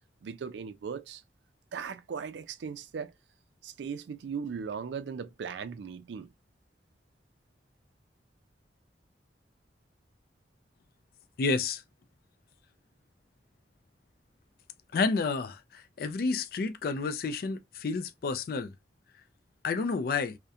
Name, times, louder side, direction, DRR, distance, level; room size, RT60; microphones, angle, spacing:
voice 1, 0.2-1.2 1.7-3.1 3.6-6.3, right 6 dB, 75° right, 0.4 m, -38 dB
voice 2, 11.4-11.8 14.9-18.7 19.6-20.4, left 4 dB, 55° left, 0.3 m, -30 dB
2.7 x 2.1 x 2.3 m
head